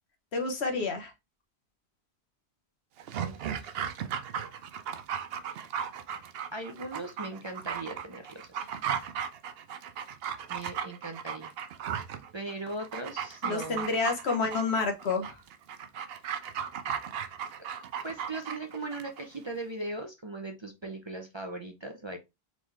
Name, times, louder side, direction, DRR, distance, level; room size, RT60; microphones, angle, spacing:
voice 1, 0.3-1.1 13.4-15.4, left 4 dB, 75° left, 5 dB, 1.3 m, -29 dB
Dog, 3.0-19.2 19.5-19.6, right 8 dB, 70° right, 0.8 m, -36 dB
voice 2, 3.2-3.8 6.5-8.7 10.5-11.5 12.3-13.8 18.0-22.2, right 2 dB, 30° right, 4 dB, 0.6 m, -39 dB
3.8 x 3.8 x 3.2 m, 0.23 s
omnidirectional pair, 1.1 m